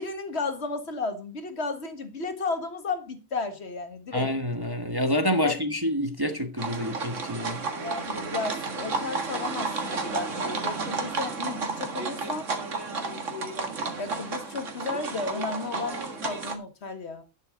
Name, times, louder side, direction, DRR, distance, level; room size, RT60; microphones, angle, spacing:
voice 1, 0.0-4.3 5.4-5.6 7.8-12.5 14.0-17.2, left 4 dB, 50° left, 2.0 m, -33 dB
voice 2, 4.1-7.6, equal, 15° right, 1.1 m, -27 dB
sound 1, 6.6-16.6, right 4 dB, 60° right, 2.1 m, -32 dB
11.0 x 9.8 x 3.8 m
omnidirectional pair, 1.5 m